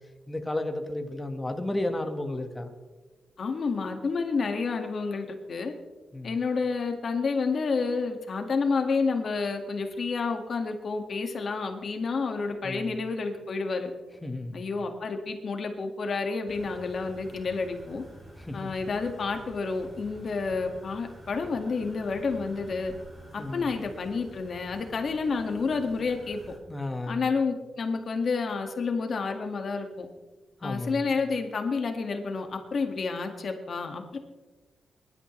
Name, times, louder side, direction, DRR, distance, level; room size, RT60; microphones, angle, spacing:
voice 1, 0.3-2.7 6.1-6.3 12.6-13.0 14.2-14.6 18.5-18.7 23.4-23.7 26.7-27.3 30.6-31.0, left 1 dB, 15° left, 5 dB, 1.6 m, -33 dB
voice 2, 3.4-5.7 6.2-13.9 14.5-18.0 18.5-22.9 23.3-26.4 27.1-30.1 30.6-34.2, left 4 dB, 55° left, 5 dB, 1.9 m, -30 dB
sound 1, 16.5-26.6, right 1 dB, 25° right, 4.0 m, -49 dB
23.5 x 12.0 x 3.3 m, 1.3 s
cardioid pair, 100°, 0 cm